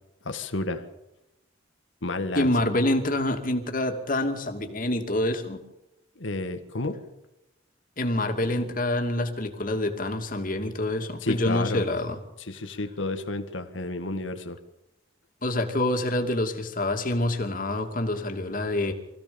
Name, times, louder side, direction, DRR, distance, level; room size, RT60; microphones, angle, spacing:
voice 1, 0.3-0.9 2.0-2.5 6.2-7.0 11.2-11.9 12.4-14.6, left 2 dB, 75° left, 7 dB, 1.8 m, -31 dB
voice 2, 2.3-5.6 8.0-12.2 15.4-18.9, left 1 dB, 45° left, 5 dB, 2.6 m, -26 dB
25.0 x 16.0 x 7.1 m, 0.94 s
head